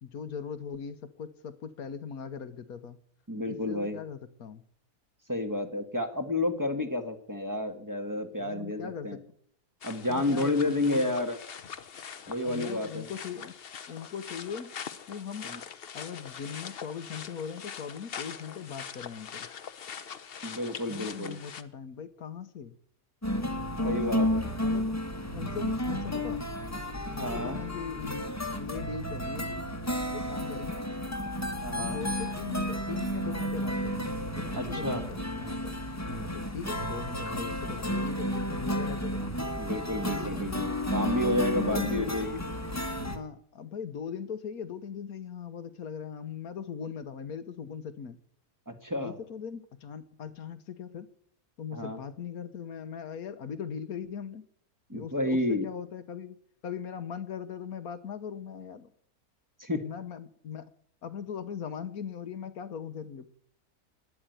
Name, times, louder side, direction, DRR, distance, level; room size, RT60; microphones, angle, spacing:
voice 1, 0.0-3.0 3.5-4.6 8.4-9.1 10.1-11.1 12.4-13.5 13.9-14.7 15.1-15.5 15.9-19.5 20.8-22.8 23.8-24.1 24.6-25.0 25.3-26.4 27.1-29.6 29.9-30.9 31.8-35.7 36.1-39.3 40.2-40.4 41.2-41.4 41.7-42.3 42.7-48.2 49.0-51.1 51.6-54.4 54.9-56.4 56.6-58.9 59.8-60.7 61.0-63.3, left 7 dB, 75° left, 13 dB, 1.6 m, -40 dB
voice 2, 3.3-4.0 5.3-9.2 9.8-11.4 12.3-13.1 15.4-15.6 20.4-21.4 23.8-24.4 27.2-27.6 31.6-32.0 34.6-35.0 39.6-42.4 48.7-49.2 51.7-52.0 54.9-55.7 59.6-59.8, left 1 dB, 15° right, 7 dB, 1.5 m, -30 dB
sound 1, 9.8-21.6, left 7 dB, 45° left, 0.9 m, -43 dB
sound 2, 23.2-43.2, equal, 10° left, 1.3 m, -32 dB
12.5 x 9.6 x 9.2 m, 0.65 s
omnidirectional pair, 1.6 m